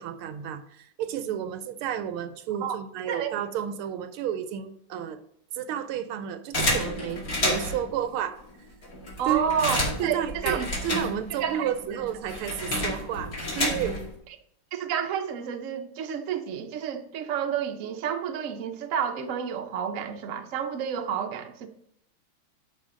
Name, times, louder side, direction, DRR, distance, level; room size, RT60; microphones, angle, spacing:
voice 1, 0.0-5.2 5.5-8.4 9.3-9.4 10.0-14.0, right 9 dB, 85° right, 11 dB, 1.5 m, -31 dB
sound 1, 6.5-7.9 8.5-8.6 8.8-11.5 11.8-14.1, left 1 dB, 40° left, 2.9 m, -29 dB
voice 2, 9.2-10.7 11.4-11.7 14.7-21.7, right 8 dB, 60° right, 5 dB, 0.8 m, -30 dB
11.5 x 5.1 x 3.8 m, 0.73 s
omnidirectional pair, 2.4 m